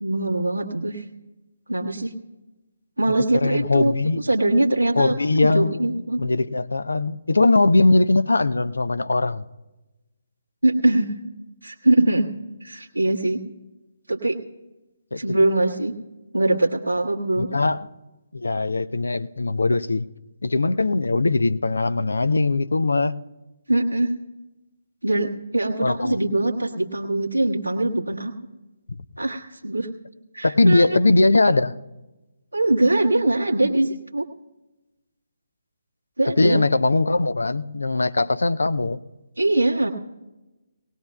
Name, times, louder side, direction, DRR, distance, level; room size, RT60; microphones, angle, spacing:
voice 1, 0.0-1.0 1.7-2.1 3.0-3.9 4.2-6.2 10.6-11.1 11.6-12.3 12.6-13.4 14.1-14.4 15.1-15.9 16.3-17.5 23.7-24.1 25.0-28.3 29.2-29.9 30.3-30.8 32.5-34.3 36.2-36.6 39.4-39.9, right 2 dB, 80° right, -1 dB, 1.4 m, -22 dB
voice 2, 3.3-4.2 5.0-9.4 15.1-15.2 17.4-17.9 18.3-20.1 20.4-23.1 25.8-26.2 30.4-31.8 36.4-39.0, left 2 dB, 65° left, 13 dB, 0.6 m, -20 dB
19.5 x 18.0 x 2.3 m, 1.1 s
figure-of-eight pair, 140°, 0 cm